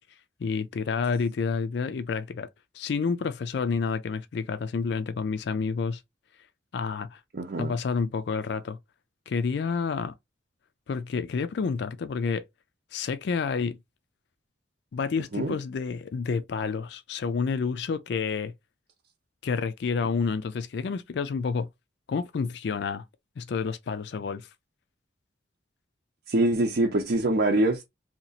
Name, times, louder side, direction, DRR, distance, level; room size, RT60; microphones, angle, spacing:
voice 1, 0.4-2.5 2.7-6.0 6.7-7.2 7.6-8.8 9.3-10.1 10.9-12.5 12.9-13.8 14.9-18.5 19.4-21.7 22.1-23.0 23.4-24.5, left 5 dB, 65° left, 0.4 m, -29 dB
voice 2, 7.3-7.7 15.3-15.5 26.3-27.8, right 2 dB, 60° right, 0.6 m, -24 dB
2.9 x 2.4 x 4.0 m
head